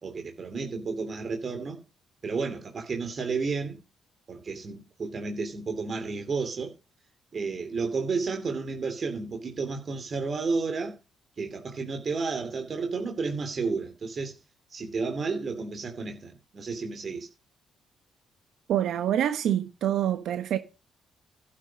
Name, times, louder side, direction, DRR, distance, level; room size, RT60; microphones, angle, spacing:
voice 1, 0.0-1.8 2.2-3.8 4.3-6.7 7.3-11.0 11.4-14.3 14.7-17.3, right 4 dB, 45° right, 2.9 m, -32 dB
voice 2, 18.7-20.6, right 10 dB, 75° right, 1.3 m, -26 dB
12.0 x 6.7 x 5.3 m
cardioid pair, 90°, 0 cm